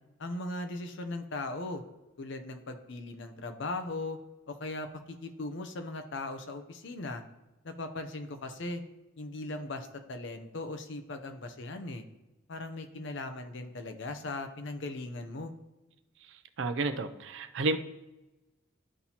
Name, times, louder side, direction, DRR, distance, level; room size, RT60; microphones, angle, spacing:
voice 1, 0.2-1.8 2.2-4.2 4.5-7.2 7.6-8.8 9.2-12.0 12.5-15.5, left 2 dB, 65° left, 7 dB, 0.7 m, -38 dB
voice 2, 16.6-17.8, right 3 dB, 65° right, 9 dB, 0.5 m, -30 dB
12.0 x 4.1 x 2.9 m, 1.0 s
head